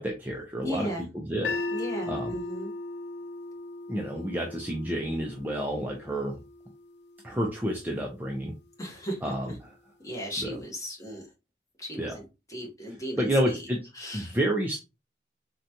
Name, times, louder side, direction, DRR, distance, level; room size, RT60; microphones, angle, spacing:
voice 1, 0.0-0.9 1.1-1.5 2.1-2.3 3.9-6.3 7.2-8.5 9.2-9.5 10.4-10.5 12.0-12.2 13.2-13.8 14.1-14.8, equal, 10° right, 0 dB, 0.4 m, -29 dB
voice 2, 0.6-1.1 1.7-2.7 8.8-9.6 10.0-11.3 11.8-13.7 13.9-14.4, equal, 20° left, 0 dB, 0.9 m, -36 dB
sound 1, 1.4-7.6, left 2 dB, 70° left, 0.3 m, -37 dB
3.8 x 2.2 x 2.7 m, 0.26 s
head